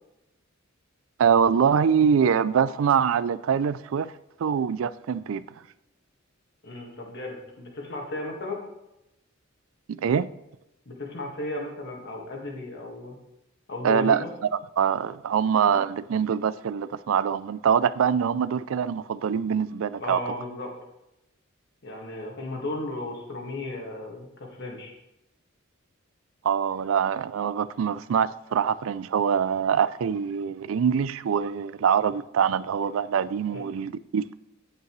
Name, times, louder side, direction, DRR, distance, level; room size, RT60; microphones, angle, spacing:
voice 1, 1.2-4.1 4.4-5.4 9.9-10.3 13.8-14.2 14.8-20.2 26.4-34.3, right 7 dB, 70° right, 0.3 m, -24 dB
voice 2, 6.6-8.6 10.8-13.2 13.7-14.3 20.0-20.7 21.8-24.9 33.5-33.6, left 2 dB, 55° left, 1.8 m, -35 dB
9.4 x 9.0 x 3.1 m
head